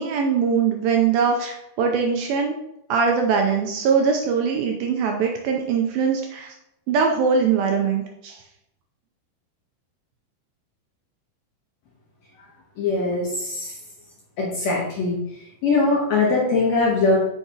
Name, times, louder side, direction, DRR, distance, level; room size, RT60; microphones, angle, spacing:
voice 1, 0.0-2.6 2.9-6.5 6.9-8.4, right 6 dB, 80° right, 2 dB, 2.3 m, -22 dB
voice 2, 12.8-13.7 14.4-15.2 15.6-17.2, left 3 dB, 70° left, -4 dB, 1.6 m, -21 dB
8.3 x 5.7 x 2.9 m, 0.83 s
omnidirectional pair, 4.6 m